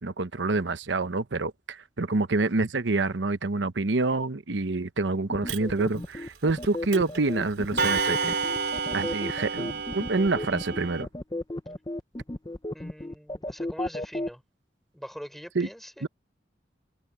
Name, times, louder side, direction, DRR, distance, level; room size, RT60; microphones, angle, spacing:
voice 1, 0.0-8.4 8.9-11.1 15.5-15.7 16.0-16.1, right 3 dB, 85° right, 0.9 m, -27 dB
sound 1, 5.3-14.3, left 1 dB, 20° left, 0.7 m, -34 dB
Clock, 5.5-5.6 6.6-6.7 6.9-7.2 7.8-11.0, right 4 dB, 65° right, 4.2 m, -29 dB
voice 2, 12.7-14.4 14.9-16.1, equal, ahead, 5.4 m, -43 dB
head